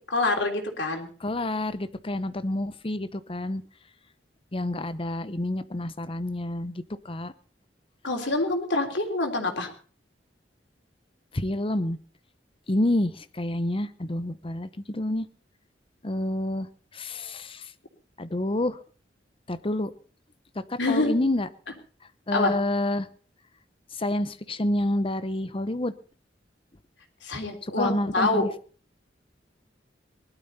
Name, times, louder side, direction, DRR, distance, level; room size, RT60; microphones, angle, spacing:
voice 1, 0.1-1.1 8.0-9.7 20.8-21.1 22.3-22.6 27.2-28.5, left 2 dB, 85° left, 3 dB, 3.3 m, -26 dB
voice 2, 1.2-3.6 4.5-7.3 11.3-12.0 12.7-15.3 16.0-17.7 18.2-18.8 19.5-19.9 20.7-21.5 22.3-23.1 23.9-25.9 27.6-28.5, left 1 dB, 30° left, 14 dB, 0.8 m, -28 dB
20.0 x 12.5 x 4.2 m, 0.42 s
head